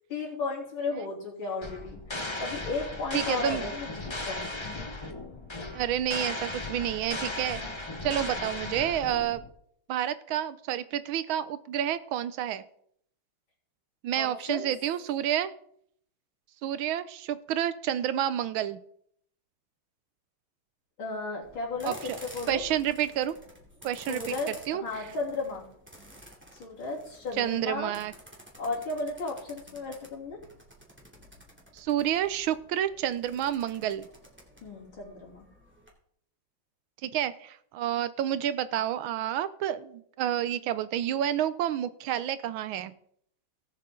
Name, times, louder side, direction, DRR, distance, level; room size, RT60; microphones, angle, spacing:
voice 1, 0.1-2.0 2.4-4.7 14.1-14.7 21.0-22.6 24.1-25.6 26.5-27.9 28.6-30.4 34.6-35.4, left 3 dB, 70° left, -3 dB, 3.9 m, -34 dB
sound 1, 1.6-9.5, left 2 dB, 30° left, 0.5 m, -36 dB
voice 2, 3.1-3.6 5.7-9.4 9.9-12.6 14.0-15.5 16.6-18.8 21.8-22.2 22.5-23.4 23.8-25.0 27.4-28.1 31.7-34.1 37.0-42.9, right 11 dB, 80° right, 14 dB, 1.4 m, -29 dB
sound 2, 21.4-35.9, equal, 5° right, 2.5 m, -51 dB
17.5 x 7.4 x 3.8 m, 0.67 s
omnidirectional pair, 2.3 m